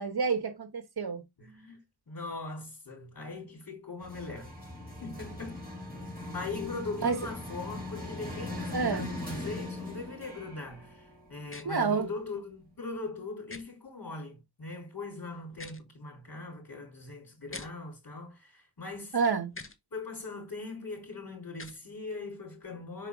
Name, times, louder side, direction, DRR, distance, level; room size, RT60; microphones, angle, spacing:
voice 1, 0.0-1.2 7.0-7.2 8.7-9.1 11.6-12.1 19.1-19.5, right 5 dB, 55° right, 1.2 m, -29 dB
voice 2, 1.4-4.5 5.0-5.7 6.3-11.0 11.3-19.2 19.9-23.1, left 3 dB, 50° left, 3.7 m, -40 dB
sound 1, 4.0-12.0, left 2 dB, 20° right, 4.0 m, -40 dB
sound 2, 11.5-11.7 13.5-13.6 15.5-15.8 17.5-17.7 19.5-19.8 21.5-21.8, left 3 dB, 30° left, 1.0 m, -44 dB
5.7 x 4.8 x 3.6 m
wide cardioid pair, 55°, 44 cm